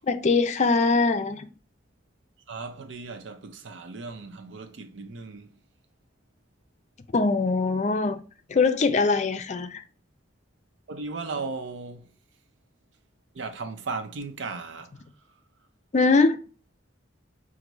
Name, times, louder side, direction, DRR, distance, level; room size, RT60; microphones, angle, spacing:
voice 1, 0.1-1.5 7.1-8.2 8.5-9.8 15.9-16.4, left 4 dB, 40° left, 0.4 m, -22 dB
voice 2, 2.5-5.5 10.9-12.1 13.3-15.0, right 4 dB, 90° right, 0.6 m, -36 dB
4.6 x 2.6 x 4.0 m
head